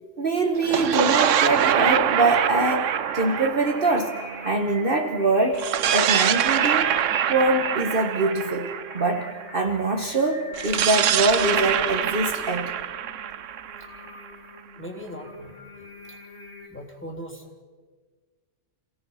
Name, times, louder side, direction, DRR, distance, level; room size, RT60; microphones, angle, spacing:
voice 1, 0.2-4.2 4.4-7.0 7.3-12.7, right 2 dB, 45° right, 4 dB, 1.4 m, -24 dB
sound 1, 0.6-5.0 5.5-9.5 10.5-14.3, right 9 dB, 80° right, 1.1 m, -24 dB
Singing, 0.7-16.7, left 1 dB, 60° left, 3.3 m, -43 dB
voice 2, 14.8-15.5 16.1-16.2 16.7-17.6, equal, 10° left, 1 dB, 3.1 m, -39 dB
28.0 x 17.0 x 5.6 m, 1.5 s
omnidirectional pair, 1.3 m